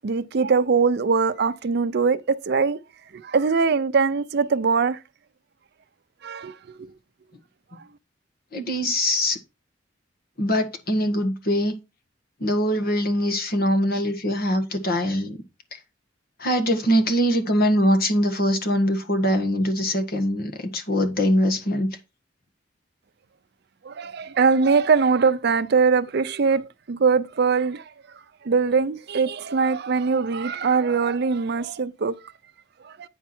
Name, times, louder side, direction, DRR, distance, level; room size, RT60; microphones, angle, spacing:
voice 1, 0.0-2.2 2.5-2.8 3.2-5.0 6.2-6.5 6.8-6.9 23.9-27.8 28.5-32.1, right 5 dB, 60° right, 0.5 m, -21 dB
voice 2, 8.5-9.4 10.4-11.7 12.4-15.4 16.4-21.9, equal, 55° left, 1.4 m, -22 dB
9.3 x 4.5 x 4.3 m
head